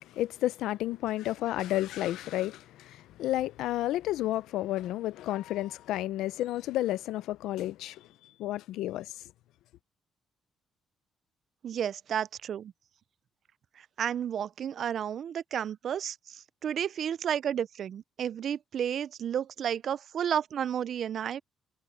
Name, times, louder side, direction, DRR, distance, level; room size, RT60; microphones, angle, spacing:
voice 1, 0.0-8.1 8.4-9.1, left 14 dB, 90° left, 0.6 m, -31 dB
voice 2, 11.6-12.7 13.8-21.4, right 9 dB, 60° right, 0.4 m, -32 dB
cardioid pair, 90°, 0 cm